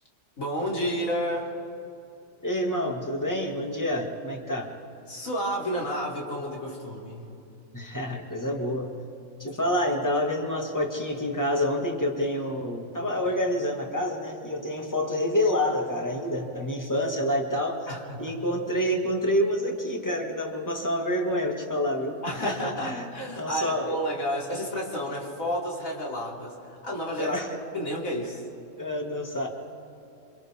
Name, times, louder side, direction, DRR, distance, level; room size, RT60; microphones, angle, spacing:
voice 1, 0.4-1.5 5.1-7.3 17.9-18.3 22.2-27.4 27.7-28.4, equal, 80° left, -2 dB, 3.6 m, -31 dB
voice 2, 2.4-4.7 7.7-8.9 9.4-17.9 18.2-23.1 23.4-24.0 27.2-27.5 28.8-29.5, left 1 dB, 15° left, 1 dB, 2.1 m, -28 dB
28.0 x 26.5 x 3.7 m, 2.8 s
omnidirectional pair, 1.4 m